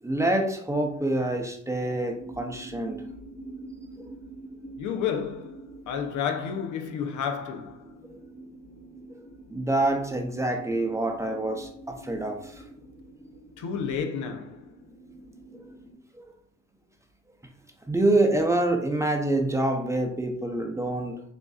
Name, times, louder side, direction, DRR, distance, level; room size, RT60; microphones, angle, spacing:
voice 1, 0.0-3.0 4.0-4.1 8.1-8.2 9.1-9.2 9.5-12.6 15.5-15.7 16.1-16.3 17.9-21.2, right 2 dB, 10° right, 0.6 m, -26 dB
sound 1, 2.2-15.9, right 2 dB, 30° left, 1.4 m, -46 dB
voice 2, 4.8-7.9 13.6-14.7, left 7 dB, 75° left, 0.8 m, -31 dB
6.5 x 2.6 x 2.4 m
cardioid pair, 90°, 30 cm